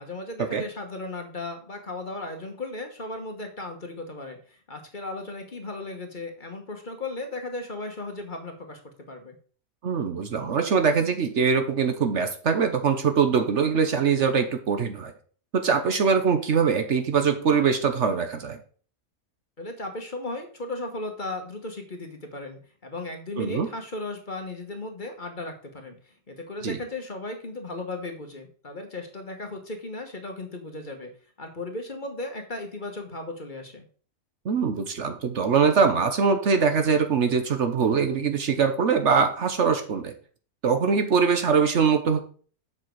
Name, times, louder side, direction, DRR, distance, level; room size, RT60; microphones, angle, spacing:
voice 1, 0.0-8.8 9.1-9.4 19.6-31.1 31.4-33.8, left 2 dB, 35° left, 4 dB, 1.3 m, -36 dB
voice 2, 9.8-15.1 15.5-18.6 23.4-23.7 26.6-26.8 34.4-40.1 40.6-42.2, right 6 dB, 55° right, 7 dB, 1.1 m, -22 dB
7.5 x 6.1 x 4.6 m, 0.43 s
omnidirectional pair, 1.5 m